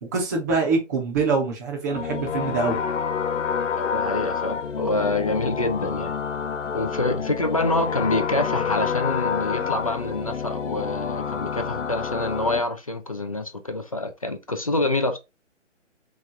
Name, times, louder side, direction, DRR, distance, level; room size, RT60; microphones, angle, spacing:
voice 1, 0.0-2.8, right 4 dB, 15° right, 0.6 m, -24 dB
sound 1, 1.9-12.6, left 6 dB, 75° left, 0.6 m, -28 dB
voice 2, 3.8-6.2 6.7-15.2, left 2 dB, 30° left, 0.4 m, -26 dB
3.5 x 3.1 x 3.4 m
figure-of-eight pair, 145°, 37 cm